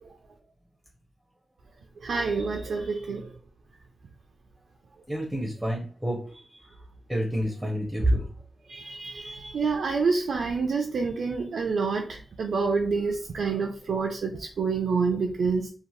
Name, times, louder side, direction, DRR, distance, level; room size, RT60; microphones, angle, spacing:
voice 1, 2.0-3.3 8.7-15.7, right 4 dB, 75° right, 2 dB, 0.3 m, -27 dB
voice 2, 5.1-6.8 7.1-8.3, right 1 dB, 5° right, -1 dB, 0.5 m, -28 dB
2.7 x 2.1 x 3.0 m, 0.42 s
wide cardioid pair, 170°, 0 cm